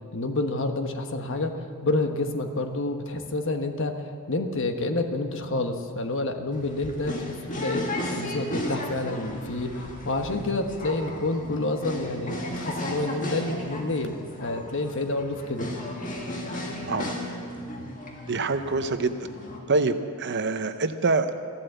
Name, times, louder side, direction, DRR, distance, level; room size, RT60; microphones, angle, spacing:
voice 1, 0.1-15.7, left 2 dB, 60° left, 5 dB, 1.3 m, -29 dB
sound 1, 6.5-19.6, left 1 dB, 35° left, 1.9 m, -35 dB
voice 2, 18.3-19.1 19.7-21.3, right 3 dB, 50° right, 9 dB, 0.8 m, -25 dB
14.5 x 12.0 x 7.9 m, 2.2 s
head